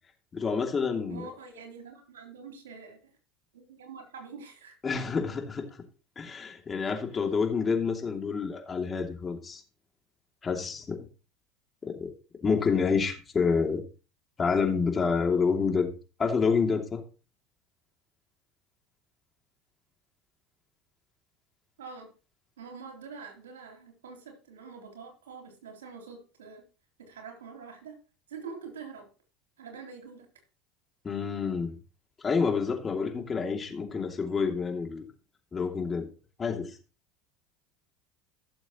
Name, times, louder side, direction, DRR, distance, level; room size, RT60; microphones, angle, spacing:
voice 1, 0.3-1.3 4.8-5.8 6.2-9.6 10.4-11.0 11.8-12.1 12.4-13.8 14.4-15.9 16.2-17.0 31.0-31.7 32.2-35.0 35.5-36.1 36.4-36.7, left 5 dB, 25° left, 2.7 m, -28 dB
voice 2, 1.1-3.0 3.5-4.7 21.8-22.1 22.6-26.6 27.0-28.0 28.3-29.1 29.6-30.3, right 5 dB, 90° right, 3.6 m, -45 dB
16.0 x 7.0 x 3.1 m
hypercardioid pair, 90°, 0 cm